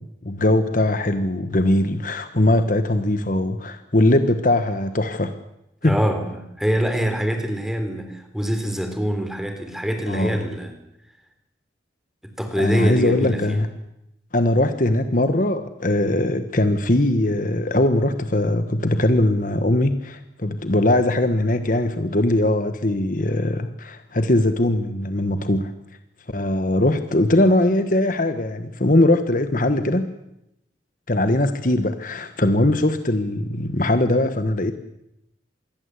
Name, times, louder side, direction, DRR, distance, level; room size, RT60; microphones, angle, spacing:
voice 1, 0.0-5.3 5.8-6.0 10.1-10.4 12.6-13.7 14.3-25.7 26.3-30.1 31.1-34.7, left 1 dB, 45° left, 9 dB, 1.4 m, -20 dB
voice 2, 5.8-10.7 12.2-13.6, equal, ahead, 6 dB, 3.7 m, -24 dB
27.0 x 21.0 x 8.4 m, 0.84 s
head